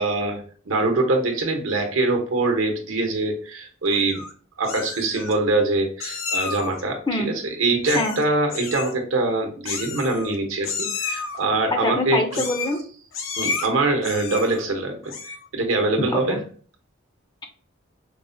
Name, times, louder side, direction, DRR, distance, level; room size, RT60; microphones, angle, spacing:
voice 1, 0.0-4.2 4.6-7.0 7.2-12.4 13.4-16.4, right 2 dB, 80° right, 3 dB, 0.8 m, -23 dB
Meow, 3.9-4.3 4.6-5.3 6.0-6.8 7.8-8.2 8.5-8.9 9.7-10.4 10.6-11.4 12.3-12.8 13.1-13.7 14.0-14.6 15.0-15.5, left 5 dB, 75° left, 0.6 m, -31 dB
voice 2, 11.7-12.8 16.1-16.4, left 2 dB, 20° left, 5 dB, 0.4 m, -24 dB
4.6 x 2.1 x 2.6 m, 0.44 s
head